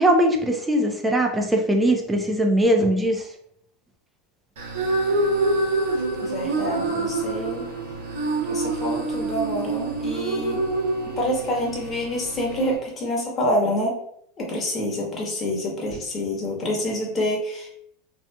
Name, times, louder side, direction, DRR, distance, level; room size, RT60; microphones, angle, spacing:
voice 1, 0.0-3.3, right 1 dB, 10° right, 2 dB, 0.5 m, -20 dB
sound 1, 4.6-12.8, right 2 dB, 75° right, 0.6 m, -26 dB
voice 2, 6.2-7.7 8.5-10.6 11.1-14.0 14.4-17.8, left 1 dB, 30° left, -2 dB, 1.1 m, -27 dB
2.7 x 2.4 x 2.2 m, 0.69 s
hypercardioid pair, 100°, 0 cm